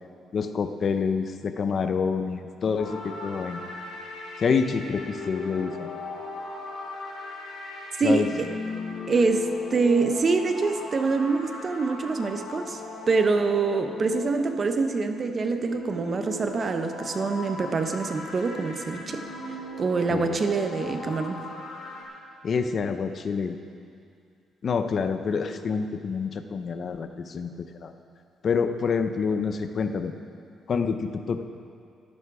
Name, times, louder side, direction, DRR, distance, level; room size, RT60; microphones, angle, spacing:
voice 1, 0.3-3.6 4.4-5.9 8.0-8.3 20.1-20.4 22.4-23.6 24.6-27.9 28.4-30.1 30.7-31.4, left 5 dB, 50° left, 8 dB, 0.7 m, -27 dB
sound 1, 2.8-22.0, left 3 dB, 90° left, 2.9 m, -38 dB
voice 2, 8.0-8.5 9.1-12.8 13.1-19.2 19.8-21.4, right 4 dB, 40° right, 7 dB, 0.9 m, -25 dB
13.5 x 11.0 x 4.8 m, 2.3 s
cardioid pair, 90°, 0 cm